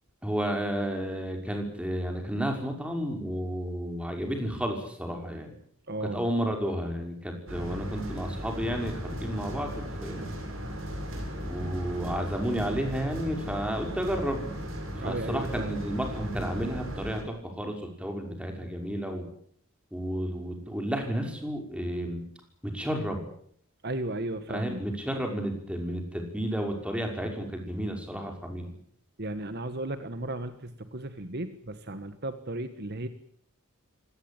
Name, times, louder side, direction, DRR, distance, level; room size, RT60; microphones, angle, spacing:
voice 1, 0.2-5.5 6.0-10.3 11.4-14.5 14.9-17.7 18.0-19.3 19.9-22.2 22.7-23.2 24.5-28.7, equal, 5° right, 3 dB, 5.8 m, -32 dB
voice 2, 5.9-6.3 10.1-10.3 15.0-15.9 23.8-24.8 29.2-33.1, right 1 dB, 50° right, 10 dB, 1.5 m, -35 dB
sound 1, 7.5-17.2, equal, 70° right, 7.9 m, -36 dB
25.0 x 19.0 x 8.9 m, 0.65 s
head